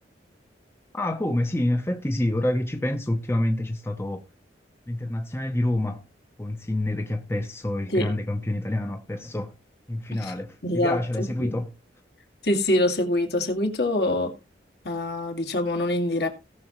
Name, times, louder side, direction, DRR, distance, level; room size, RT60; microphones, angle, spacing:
voice 1, 0.9-4.2 4.9-6.0 6.4-9.5 9.9-11.7, left 1 dB, 15° left, 0.8 m, -27 dB
voice 2, 10.6-11.5 12.4-14.3 14.8-16.3, left 1 dB, 65° left, 2.1 m, -25 dB
17.5 x 6.2 x 3.0 m
head